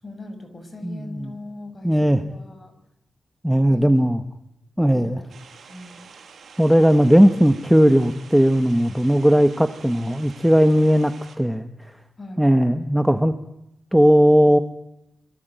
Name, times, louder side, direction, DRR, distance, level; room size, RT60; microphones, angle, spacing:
voice 1, 0.0-2.7 3.7-3.9 4.9-6.1 12.2-12.4, left 2 dB, 25° left, 9 dB, 6.2 m, -40 dB
voice 2, 0.8-1.3 1.8-2.2 3.4-4.2 4.8-5.2 6.6-11.9 12.4-13.3 13.9-14.6, equal, 5° right, 9 dB, 1.2 m, -17 dB
sound 1, 5.3-11.4, right 5 dB, 70° right, 5.7 m, -46 dB
27.5 x 22.5 x 9.3 m, 0.84 s
wide cardioid pair, 120°, 0 cm